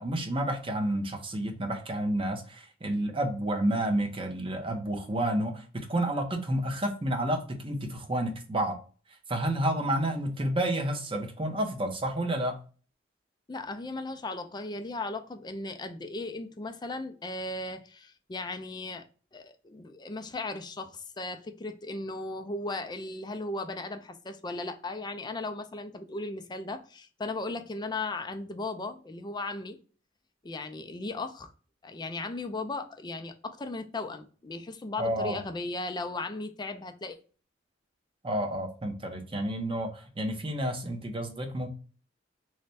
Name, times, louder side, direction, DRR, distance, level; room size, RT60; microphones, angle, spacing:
voice 1, 0.0-8.8 9.3-12.5 35.0-35.4 38.2-41.7, right 1 dB, 30° right, 0.7 m, -30 dB
voice 2, 13.5-19.1 19.3-29.8 30.4-31.5 31.8-37.2, left 2 dB, 25° left, 0.4 m, -36 dB
3.2 x 2.2 x 4.0 m
head